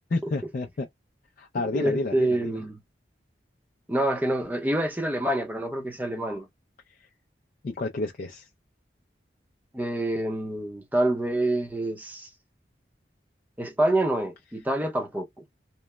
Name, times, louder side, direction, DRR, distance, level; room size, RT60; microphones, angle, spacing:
voice 1, 0.1-0.9 1.4-2.6 6.9-7.1 7.6-8.5, left 2 dB, 45° left, 0.3 m, -30 dB
voice 2, 1.7-2.7 3.9-6.5 9.7-12.3 13.6-15.3, right 1 dB, 10° right, 0.6 m, -27 dB
3.0 x 2.0 x 2.2 m
head